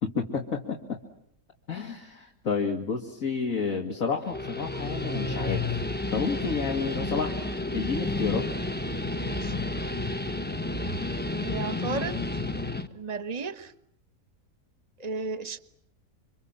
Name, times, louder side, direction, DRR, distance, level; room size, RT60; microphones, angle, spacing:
voice 1, 0.0-1.0 1.7-5.7 6.1-7.3 7.7-8.5, left 5 dB, 50° left, 1 dB, 2.7 m, -30 dB
Guitar, 4.1-12.9, left 2 dB, 5° left, 1.0 m, -31 dB
voice 2, 9.2-9.5 11.4-12.3 12.9-13.7 15.0-15.6, right 4 dB, 25° right, 12 dB, 1.2 m, -34 dB
28.5 x 25.0 x 7.5 m, 0.71 s
omnidirectional pair, 1.8 m